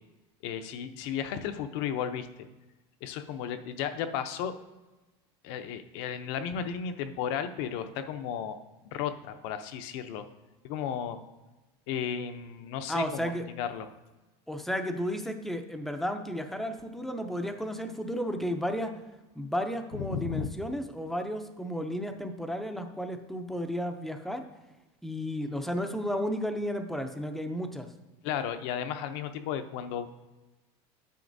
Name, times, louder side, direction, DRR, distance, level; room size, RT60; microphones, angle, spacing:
voice 1, 0.4-2.3 3.0-4.5 5.4-8.6 8.9-10.2 10.6-11.2 11.9-13.3 13.6-13.9 19.9-20.5 28.2-30.1, left 8 dB, 65° left, 9 dB, 0.6 m, -34 dB
voice 2, 12.9-13.5 14.5-18.9 19.3-24.4 25.0-27.9, equal, ahead, 6 dB, 0.4 m, -33 dB
9.3 x 6.9 x 2.6 m, 1.1 s
cardioid pair, 155°, 15 cm